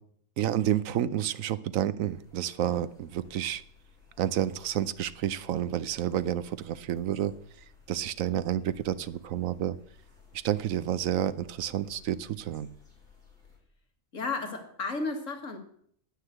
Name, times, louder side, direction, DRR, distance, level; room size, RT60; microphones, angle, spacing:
voice 1, 0.4-3.6 4.2-7.3 7.9-9.8 10.4-12.7, right 11 dB, 90° right, 14 dB, 1.1 m, -30 dB
sound 1, 2.0-13.6, left 6 dB, 35° left, 5.0 m, -58 dB
voice 2, 14.1-15.6, left 3 dB, 75° left, 4 dB, 2.3 m, -33 dB
9.7 x 9.6 x 7.7 m, 0.63 s
omnidirectional pair, 1.3 m